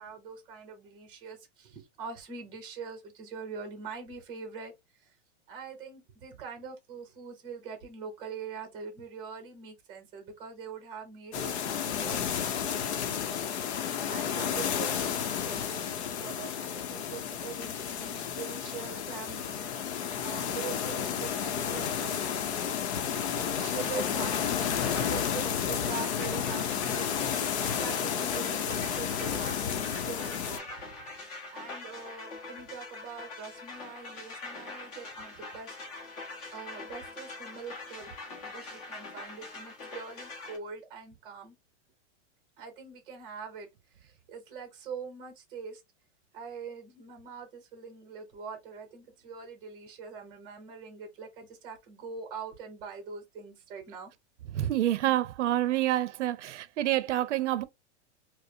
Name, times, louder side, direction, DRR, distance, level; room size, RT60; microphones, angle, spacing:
voice 1, 0.0-4.7 5.0-5.1 5.5-12.7 13.8-22.3 23.3-30.7 31.5-35.8 36.1-36.2 36.5-38.1 38.4-41.5 42.6-43.7 44.0-45.8 46.3-54.1, right 5 dB, 15° right, 0.7 m, -43 dB
sound 1, 11.3-30.6, left 8 dB, 65° left, 0.7 m, -32 dB
sound 2, 23.8-40.6, left 3 dB, 30° left, 1.0 m, -43 dB
voice 2, 54.5-57.6, right 13 dB, 80° right, 0.6 m, -27 dB
4.7 x 2.0 x 2.7 m
supercardioid pair, 175°, 35 cm